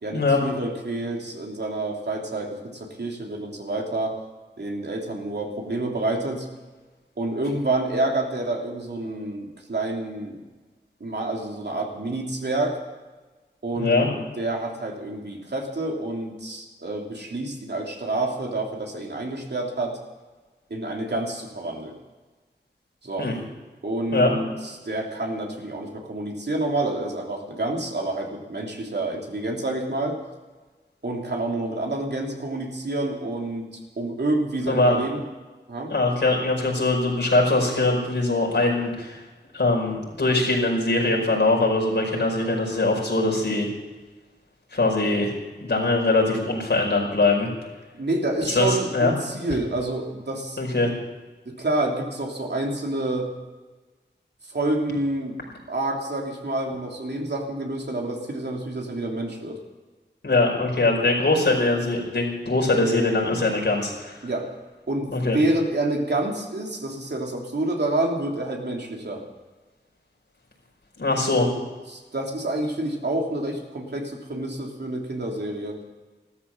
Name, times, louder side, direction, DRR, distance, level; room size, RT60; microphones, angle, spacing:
voice 1, 0.0-4.2 4.6-6.5 7.2-10.4 11.0-12.8 13.6-20.0 20.7-22.0 23.0-23.3 23.8-30.2 31.0-33.7 34.0-35.2 35.7-35.9 47.9-50.6 51.4-53.3 54.5-59.6 64.2-64.5 64.9-69.2 71.2-71.4 71.9-75.8, right 2 dB, 65° right, 0 dB, 3.1 m, -28 dB
voice 2, 13.8-14.1 23.2-23.3 24.1-24.3 34.7-35.0 35.9-39.2 39.5-43.7 44.7-45.3 45.6-47.5 48.5-49.1 50.6-50.9 60.2-64.3 65.1-65.4 71.0-71.5, left 2 dB, 70° left, -1 dB, 5.2 m, -22 dB
14.5 x 13.0 x 7.4 m, 1.3 s
wide cardioid pair, 55°, 19 cm